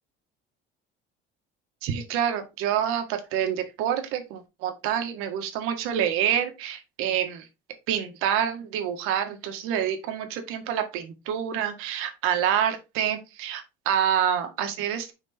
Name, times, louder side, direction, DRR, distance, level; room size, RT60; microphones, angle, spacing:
voice 1, 1.8-7.5 7.9-15.1, right 9 dB, 90° right, 7 dB, 1.7 m, -27 dB
6.3 x 4.4 x 4.3 m, 0.26 s
cardioid pair, 165°, 21 cm